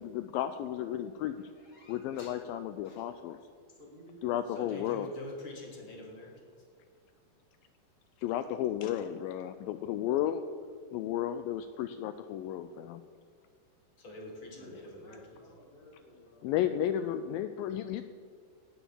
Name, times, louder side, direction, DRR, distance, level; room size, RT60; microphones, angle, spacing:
voice 1, 0.0-1.5 1.9-3.4 4.2-5.1 8.2-10.4 10.9-13.0 16.4-18.0, left 11 dB, 80° left, 10 dB, 2.1 m, -33 dB
voice 2, 1.5-2.4 2.8-3.1 4.5-6.5 14.0-15.4, left 1 dB, 45° left, 1 dB, 1.9 m, -46 dB
voice 3, 3.7-5.0 14.5-16.5, left 1 dB, 20° right, -3 dB, 1.6 m, -53 dB
17.5 x 7.2 x 7.1 m, 2.2 s
omnidirectional pair, 4.5 m